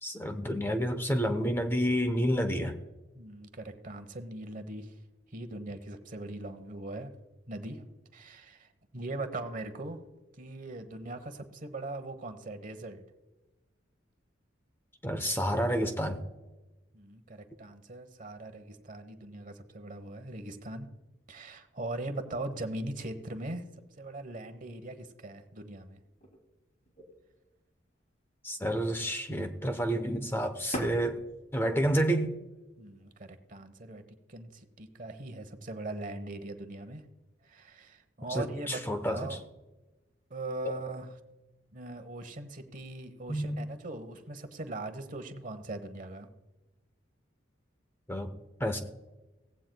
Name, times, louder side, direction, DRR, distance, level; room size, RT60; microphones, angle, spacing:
voice 1, 0.0-2.8 15.0-16.2 28.4-31.2 31.5-32.4 38.3-39.2 40.6-40.7 43.3-43.7 48.1-48.3 48.6-48.8, equal, 10° left, 7 dB, 0.9 m, -29 dB
voice 2, 3.1-4.9 5.3-7.1 7.5-7.9 8.1-10.0 10.4-13.0 16.9-20.9 21.3-23.6 24.0-26.0 32.8-34.0 34.3-37.0 37.4-39.4 40.3-41.1 41.7-46.3, right 2 dB, 45° right, 8 dB, 1.1 m, -40 dB
sound 1, 21.8-22.4 22.8-23.0 23.5-25.8 26.1-27.5 27.8-28.8 29.1-29.9 30.3-31.8 32.3-33.4, equal, 40° left, 2.9 m, -45 dB
16.5 x 15.5 x 2.3 m, 1.1 s
head